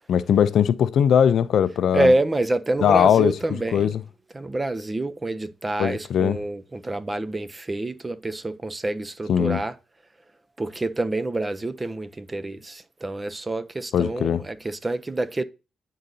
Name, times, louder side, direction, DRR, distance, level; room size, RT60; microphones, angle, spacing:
voice 1, 0.1-2.1 2.8-3.3 3.7-4.0 5.8-6.4 9.3-9.6 13.9-14.4, left 8 dB, 65° left, 0.4 m, -19 dB
voice 2, 1.9-4.0 4.3-9.8 10.6-15.4, right 2 dB, 20° right, 0.4 m, -27 dB
9.6 x 3.8 x 2.7 m
cardioid pair, 90°, 0 cm